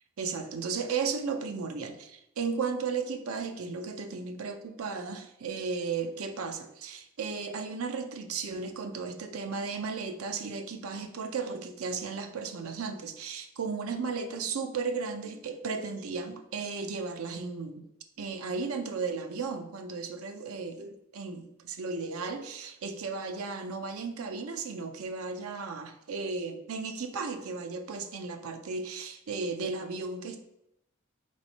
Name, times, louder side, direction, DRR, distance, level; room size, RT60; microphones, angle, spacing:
voice 1, 0.2-17.8 18.2-30.5, right 4 dB, 80° right, 6 dB, 0.5 m, -35 dB
4.1 x 3.2 x 4.0 m, 0.81 s
head